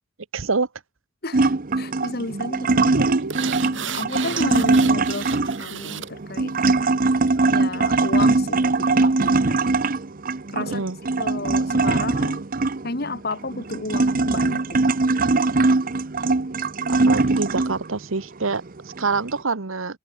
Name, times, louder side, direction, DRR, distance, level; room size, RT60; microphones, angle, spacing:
voice 1, 0.3-0.7 2.9-3.3 10.7-11.0 16.9-20.0, right 4 dB, 80° right, 1.3 m, -26 dB
voice 2, 1.2-3.0 3.6-6.5 7.5-9.7 10.5-10.8 11.2-12.4 12.8-14.8, left 2 dB, 50° left, 2.8 m, -32 dB
sound 1, 1.3-17.9 18.4-19.4, right 3 dB, 45° right, 0.8 m, -21 dB
sound 2, 3.3-6.1 6.5-6.6, right 7 dB, 65° right, 5.3 m, -33 dB
head